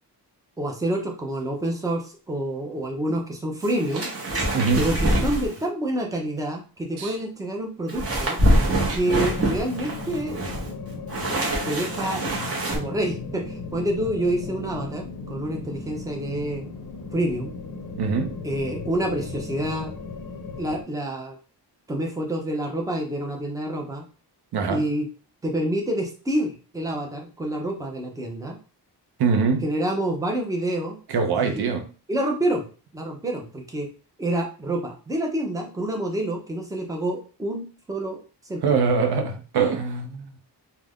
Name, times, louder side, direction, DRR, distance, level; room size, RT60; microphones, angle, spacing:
voice 1, 0.6-4.1 4.8-8.4 8.9-10.4 11.6-12.2 12.7-16.7 17.1-17.5 18.4-19.9 20.6-21.4 21.9-24.0 24.7-25.1 25.4-28.6 29.6-31.0 31.3-31.6 32.1-32.7 32.9-33.9 34.2-38.2 38.5-38.6, right 1 dB, 10° right, 0.5 m, -27 dB
sound 1, 3.6-5.6 7.9-12.8, right 1 dB, 35° right, 0.8 m, -25 dB
voice 2, 4.5-4.8 7.0-7.2 18.0-18.3 24.5-24.9 29.2-29.7 31.1-31.9 38.6-40.4, right 5 dB, 65° right, 0.6 m, -23 dB
sound 2, 9.2-20.8, left 3 dB, 50° left, 0.5 m, -36 dB
2.4 x 2.2 x 3.4 m
wide cardioid pair, 150°, 42 cm